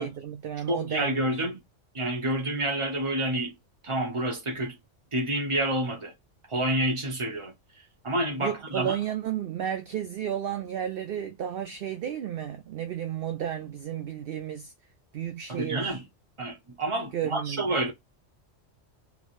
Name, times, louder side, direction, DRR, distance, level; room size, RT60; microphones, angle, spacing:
voice 1, 0.0-1.4 8.4-14.7 15.1-16.0 17.1-17.8, right 10 dB, 60° right, 0.6 m, -33 dB
voice 2, 0.7-1.6 1.9-3.5 3.8-4.8 5.1-6.1 6.5-7.5 8.0-8.9 15.5-16.0 16.4-17.9, right 1 dB, 25° right, 0.9 m, -28 dB
3.3 x 3.0 x 2.5 m
omnidirectional pair, 1.3 m